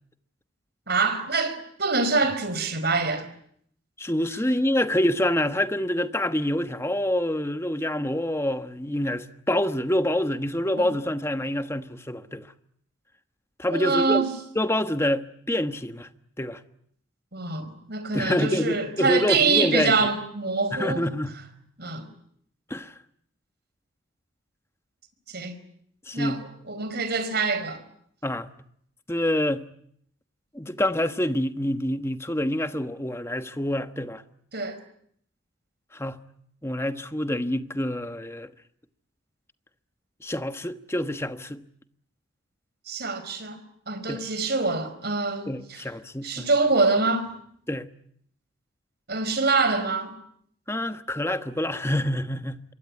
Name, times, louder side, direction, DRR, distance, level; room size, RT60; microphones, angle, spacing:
voice 1, 0.9-3.3 10.8-10.9 13.7-14.3 17.3-21.1 21.8-22.1 25.3-25.6 26.1-26.4 26.7-27.8 34.5-34.8 42.9-43.6 43.9-45.8 46.2-47.3 49.1-50.1, right 3 dB, 55° right, 4.6 m, -25 dB
voice 2, 4.0-12.5 13.6-14.2 14.5-16.1 16.4-16.6 18.1-20.1 20.7-21.4 22.7-22.9 26.1-26.4 28.2-28.5 29.1-29.6 30.5-34.2 35.9-36.2 36.6-38.5 40.2-41.6 44.1-44.2 45.5-46.5 47.7-47.9 50.7-52.6, left 1 dB, 15° left, 1.3 m, -26 dB
26.0 x 23.0 x 9.7 m
head